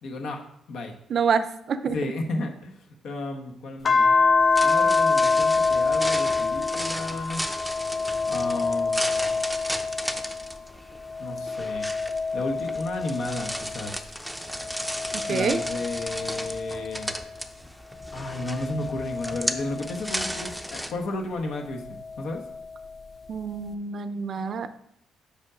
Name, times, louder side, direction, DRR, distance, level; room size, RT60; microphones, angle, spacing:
voice 1, 0.0-0.9 1.9-2.8 3.0-4.1 4.6-7.4 8.3-9.4 11.2-11.9 12.3-14.1 15.3-17.1 18.1-22.4, left 2 dB, 70° left, 2 dB, 1.2 m, -33 dB
voice 2, 1.1-2.0 15.1-15.6 23.3-24.7, right 6 dB, 55° right, 11 dB, 0.5 m, -27 dB
sound 1, 3.9-10.6 11.0-13.9 14.5-17.3 18.0-20.5 21.8-22.9, left 4 dB, 40° left, 0.4 m, -26 dB
sound 2, 4.4-20.9, equal, ahead, 0.6 m, -35 dB
5.3 x 5.2 x 5.0 m, 0.72 s
cardioid pair, 90°, 0 cm